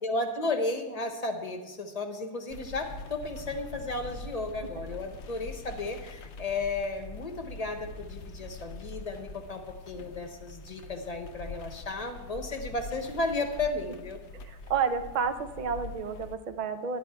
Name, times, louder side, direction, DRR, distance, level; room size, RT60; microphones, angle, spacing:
voice 1, 0.0-14.2, left 2 dB, 25° left, 5 dB, 1.0 m, -34 dB
sound 1, 2.5-16.4, left 3 dB, 55° left, 0.9 m, -44 dB
voice 2, 14.3-17.0, right 6 dB, 65° right, 8 dB, 0.4 m, -31 dB
12.0 x 10.5 x 4.6 m, 1.2 s
omnidirectional pair, 1.8 m